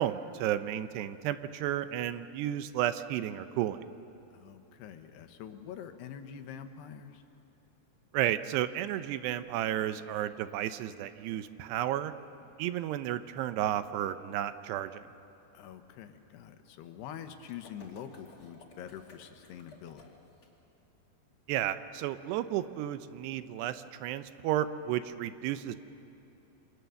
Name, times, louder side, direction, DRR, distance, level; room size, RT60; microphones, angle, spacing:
voice 1, 0.0-3.9 8.1-12.1 12.6-15.0 21.5-25.8, right 12 dB, 80° right, 11 dB, 2.8 m, -32 dB
voice 2, 4.3-7.2 15.5-20.1, left 9 dB, 75° left, 7 dB, 3.1 m, -45 dB
sound 1, 17.4-20.5, left 2 dB, 35° left, 3.1 m, -56 dB
28.0 x 26.0 x 7.0 m, 2.9 s
omnidirectional pair, 5.0 m